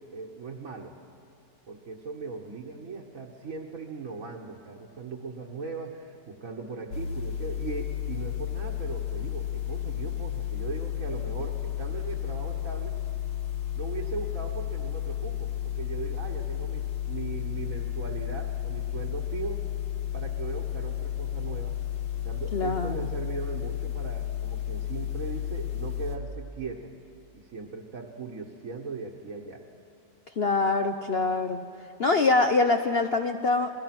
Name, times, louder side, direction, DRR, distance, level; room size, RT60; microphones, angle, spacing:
voice 1, 0.1-1.0 1.7-12.9 13.8-19.6 20.1-21.8 22.1-26.9 27.3-29.6, right 4 dB, 50° right, -3 dB, 1.7 m, -38 dB
sound 1, 6.9-26.2, left 11 dB, 90° left, 2.1 m, -32 dB
voice 2, 22.5-23.0 30.4-31.6 32.0-33.7, left 3 dB, 55° left, 6 dB, 0.7 m, -24 dB
29.0 x 20.5 x 6.0 m, 2.5 s
omnidirectional pair, 2.0 m